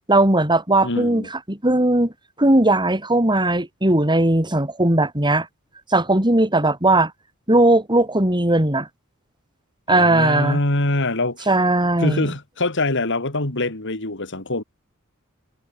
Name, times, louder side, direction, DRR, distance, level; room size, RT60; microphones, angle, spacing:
voice 1, 0.1-2.1 2.4-5.5 5.9-7.1 7.5-8.9 9.9-10.6 11.5-12.3, right 2 dB, 20° right, 4.6 m, -18 dB
voice 2, 0.8-1.3 9.9-11.5 12.0-14.6, left 2 dB, 60° left, 3.8 m, -24 dB
head